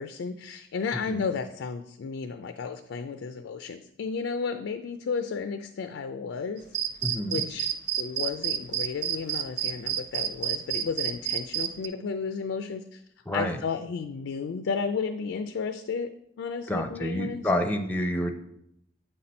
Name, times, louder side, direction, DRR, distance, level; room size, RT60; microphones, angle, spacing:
voice 1, 0.0-6.7 7.3-7.7 8.0-13.0 13.3-16.1 16.4-17.4, left 5 dB, 70° left, 9 dB, 0.4 m, -33 dB
sound 1, 6.7-11.9, right 10 dB, 60° right, 0.4 m, -29 dB
voice 2, 7.0-7.5 13.3-13.6 16.7-18.3, left 1 dB, 10° left, 6 dB, 0.5 m, -28 dB
8.1 x 4.2 x 4.2 m, 0.77 s
head